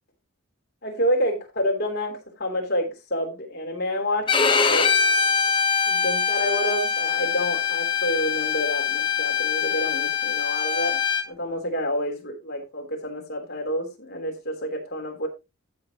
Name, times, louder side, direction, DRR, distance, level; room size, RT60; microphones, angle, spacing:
voice 1, 0.8-4.9 5.9-11.0 11.3-15.3, equal, 50° left, 3.3 m, -28 dB
Bowed string instrument, 4.3-11.2, left 6 dB, 25° left, 1.1 m, -23 dB
14.5 x 6.7 x 3.0 m
head